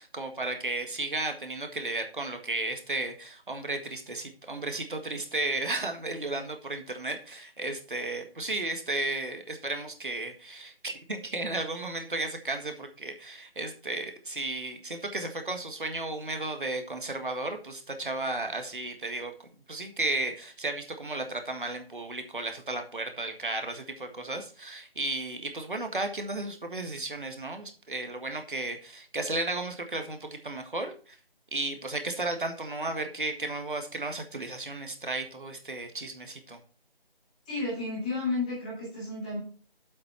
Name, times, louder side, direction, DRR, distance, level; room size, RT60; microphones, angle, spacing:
voice 1, 0.0-19.3 19.7-30.9 31.5-36.6, right 2 dB, 55° right, 6 dB, 1.7 m, -34 dB
voice 2, 37.4-39.4, left 3 dB, 10° left, -6 dB, 1.3 m, -32 dB
7.7 x 7.0 x 4.4 m, 0.39 s
figure-of-eight pair, 160°, 30 cm